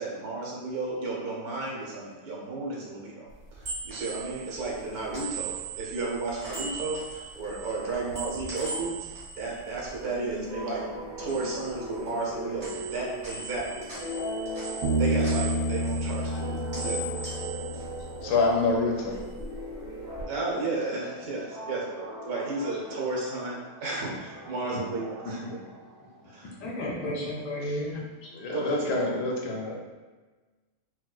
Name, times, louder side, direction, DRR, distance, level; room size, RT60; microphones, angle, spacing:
voice 1, 0.0-8.9 9.3-10.8 11.2-13.9 15.0-17.1 18.1-18.4 20.2-25.6 26.2-26.5 27.0-27.2 28.5-29.0, right 3 dB, 70° right, -3 dB, 1.2 m, -33 dB
sound 1, 3.3-10.6 10.9-12.3 12.6-18.6 18.9-20.2, right 4 dB, 45° right, 1.7 m, -40 dB
sound 2, 10.0-26.4, equal, 25° right, 0.5 m, -39 dB
Bass guitar, 14.8-18.3, right 1 dB, 90° right, 1.2 m, -29 dB
voice 2, 18.2-19.3 25.3-25.4 26.4-26.5 26.8-26.9 28.3-29.8, left 3 dB, 90° left, -2 dB, 1.2 m, -27 dB
voice 3, 26.6-28.5, left 1 dB, 65° left, -3 dB, 0.9 m, -33 dB
4.5 x 2.1 x 2.3 m, 1.3 s
omnidirectional pair, 1.7 m